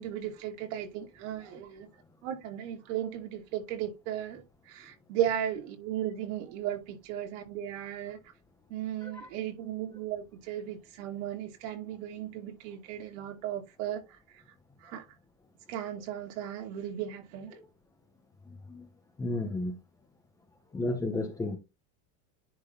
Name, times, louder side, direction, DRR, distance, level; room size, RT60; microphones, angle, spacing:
voice 1, 0.0-1.9 2.2-8.2 8.7-14.2 14.8-15.0 15.7-17.5, right 11 dB, 65° right, 2.7 m, -36 dB
voice 2, 18.5-18.9 19.2-19.8 20.7-21.6, left 2 dB, 10° left, 0.9 m, -33 dB
10.5 x 3.7 x 3.8 m
cardioid pair, 175°, 40 cm